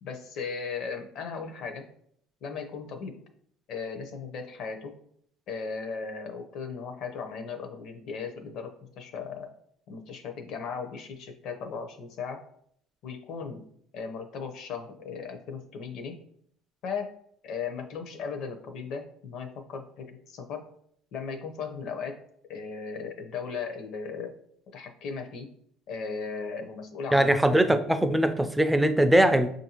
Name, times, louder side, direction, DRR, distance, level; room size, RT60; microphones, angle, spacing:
voice 1, 0.0-1.9 2.4-3.2 3.7-5.0 5.5-9.5 9.9-12.4 13.0-13.7 13.9-16.2 16.8-17.1 17.4-20.7 21.1-22.2 22.5-24.3 24.7-25.5 25.9-27.4, left 5 dB, 55° left, 6 dB, 0.6 m, -37 dB
voice 2, 27.1-29.5, right 1 dB, 5° right, 8 dB, 0.3 m, -21 dB
5.3 x 2.6 x 2.8 m, 0.67 s
cardioid pair, 135°, 0 cm